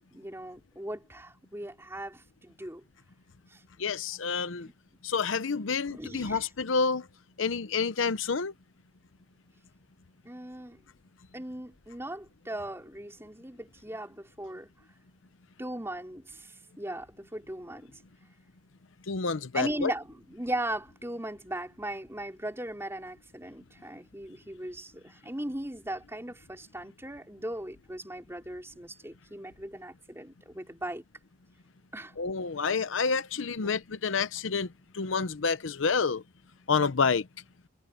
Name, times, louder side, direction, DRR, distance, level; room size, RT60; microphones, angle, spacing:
voice 1, 0.1-2.8 3.5-3.6 4.6-4.7 5.9-6.4 10.2-10.8 11.3-14.7 15.6-17.9 19.5-31.0 31.9-32.1 33.6-33.8, right 1 dB, 15° right, 4.3 m, -38 dB
voice 2, 3.8-4.7 5.0-7.1 7.4-8.5 19.1-19.9 32.2-34.7 34.9-36.2 36.7-37.3, left 5 dB, 80° left, 0.8 m, -28 dB
head